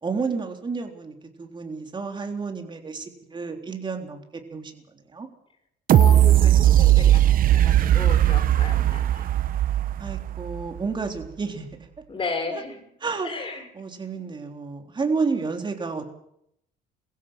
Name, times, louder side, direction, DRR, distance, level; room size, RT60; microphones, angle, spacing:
voice 1, 0.0-4.2 4.5-5.3 10.0-11.9 13.0-13.3 13.8-16.1, right 4 dB, 25° right, 4 dB, 3.8 m, -31 dB
voice 2, 5.9-9.3 12.1-12.8 13.2-13.7, left 4 dB, 30° left, 6 dB, 6.0 m, -34 dB
sound 1, 5.9-10.8 11.2-11.3, right 12 dB, 55° right, 0.9 m, -18 dB
22.5 x 16.0 x 7.7 m, 0.72 s
cardioid pair, 110°, 17 cm